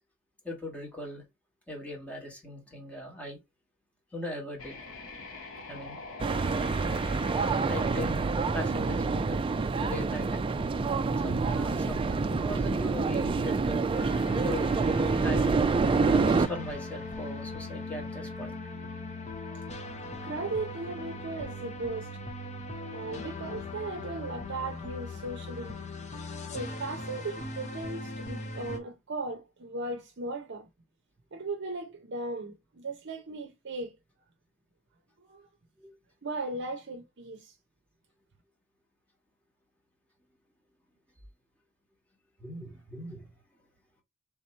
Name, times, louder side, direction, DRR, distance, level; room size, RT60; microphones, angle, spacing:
voice 1, 0.4-1.2 1.7-3.4 4.1-4.8 5.7-6.0 7.7-9.5 9.8-10.4 11.2-13.8 14.4-14.7 15.1-15.7 16.0-18.6 26.2-26.3 35.8-35.9 42.4-43.3, left 1 dB, 5° left, 1.5 m, -39 dB
sound 1, 4.6-9.5, left 3 dB, 80° left, 1.4 m, -45 dB
sound 2, 6.2-16.5, right 4 dB, 25° right, 0.3 m, -27 dB
sound 3, 13.9-28.8, left 2 dB, 35° left, 0.8 m, -39 dB
voice 2, 20.2-22.1 22.9-25.8 26.5-30.7 31.3-34.0 35.2-35.5 36.2-37.5, right 2 dB, 55° right, 0.7 m, -37 dB
3.6 x 2.9 x 4.3 m
head